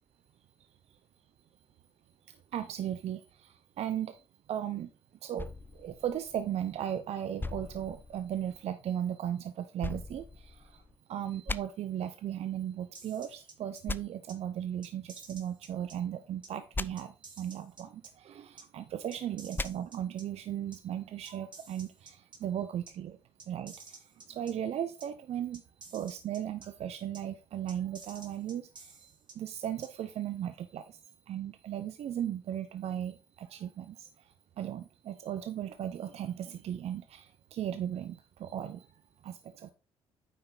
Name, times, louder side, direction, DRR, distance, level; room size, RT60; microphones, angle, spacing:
voice 1, 2.3-4.2 4.5-4.9 5.2-10.8 11.1-23.2 23.5-25.6 25.9-28.9 29.4-38.9 39.2-39.7, right 10 dB, 55° right, 0.7 m, -37 dB
sound 1, 5.4-6.8 7.4-8.6 9.8-11.0 11.5-11.6 13.9-14.0 16.7-16.9 19.5-19.7, left 3 dB, 15° left, 0.5 m, -38 dB
sound 2, 12.9-13.8 14.3-14.4 14.8-16.0 16.4-16.5 17.0-18.1 18.6-18.7 19.1-20.2 20.7-20.8 21.3-22.4 22.9-23.0 23.4-24.5 25.0-25.1 25.5-26.7 27.1-27.2 27.7-29.3 29.8-29.9, right 4 dB, 40° right, 2.7 m, -51 dB
9.3 x 5.4 x 3.8 m
hypercardioid pair, 55°, 12 cm